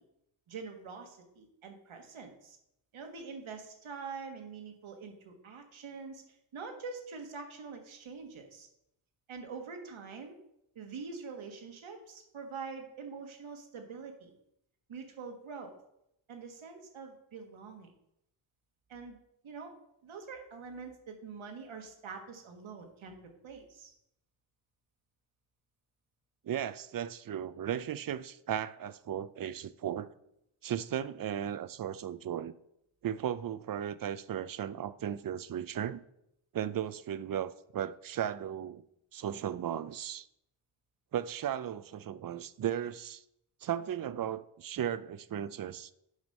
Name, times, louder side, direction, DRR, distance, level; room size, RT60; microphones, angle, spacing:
voice 1, 0.5-2.6 2.9-6.2 6.5-8.7 9.3-10.3 10.7-14.3 14.9-15.7 16.3-17.9 18.9-19.2 19.4-19.7 20.0-23.2 23.4-23.9, right 5 dB, 75° right, 1.6 m, -45 dB
voice 2, 26.4-30.1 30.6-32.5 33.0-36.0 36.5-38.8 39.1-40.3 41.1-43.2 43.6-45.9, right 10 dB, 45° right, 0.5 m, -36 dB
8.1 x 5.2 x 5.3 m
cardioid pair, 90°, 48 cm